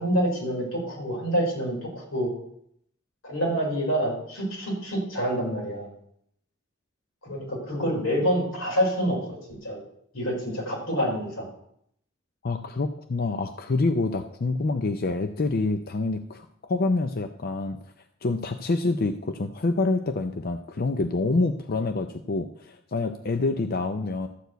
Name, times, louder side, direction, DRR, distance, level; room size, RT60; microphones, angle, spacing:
voice 1, 0.0-2.3 3.2-5.9 7.2-9.8 10.1-11.5, equal, 85° left, -3 dB, 4.8 m, -27 dB
voice 2, 12.4-17.8 18.2-24.3, left 3 dB, 50° left, 8 dB, 0.6 m, -27 dB
13.0 x 4.7 x 8.0 m, 0.71 s
head